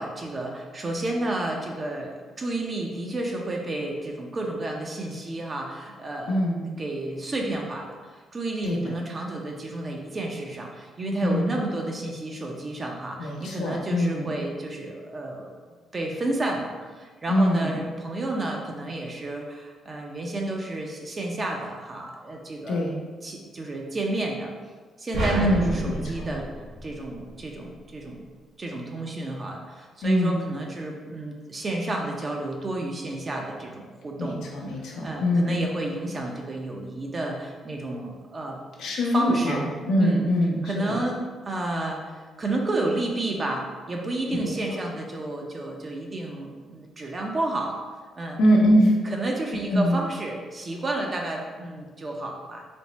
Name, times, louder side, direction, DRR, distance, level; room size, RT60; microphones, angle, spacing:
voice 1, 0.0-6.4 6.8-15.5 15.9-22.8 23.2-24.5 25.0-26.5 26.8-28.2 28.6-34.4 35.0-38.6 39.1-39.6 40.0-40.3 40.6-47.8 48.2-48.4 49.0-52.7, right 2 dB, 35° right, 0 dB, 0.5 m, -31 dB
voice 2, 6.3-6.7 8.6-8.9 11.2-11.5 13.2-14.4 17.3-17.8 22.7-23.0 25.3-26.3 30.0-30.4 34.2-35.6 38.8-41.0 44.3-44.5 48.4-49.0 49.7-50.0, equal, 80° left, -1 dB, 0.7 m, -23 dB
sound 1, 25.1-27.5, right 1 dB, 85° right, 1.1 m, -30 dB
3.4 x 2.1 x 3.9 m, 1.4 s
cardioid pair, 90°, 0 cm